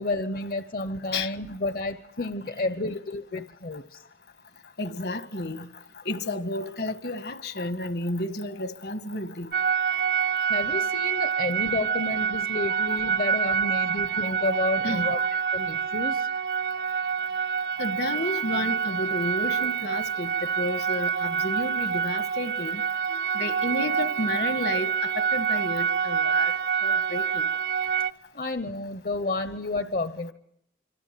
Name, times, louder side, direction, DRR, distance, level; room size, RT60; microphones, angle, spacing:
voice 1, 0.0-4.0 10.5-15.2 15.5-16.3 28.3-30.3, left 2 dB, 50° left, 0.9 m, -30 dB
voice 2, 2.6-2.9 4.8-5.7 6.0-9.5 12.7-14.5 14.8-15.2 17.8-22.8 23.1-26.5 26.8-27.5, left 1 dB, 65° left, 1.7 m, -32 dB
sound 1, 9.5-28.1, right 6 dB, 65° right, 1.0 m, -27 dB
26.0 x 25.5 x 7.7 m
head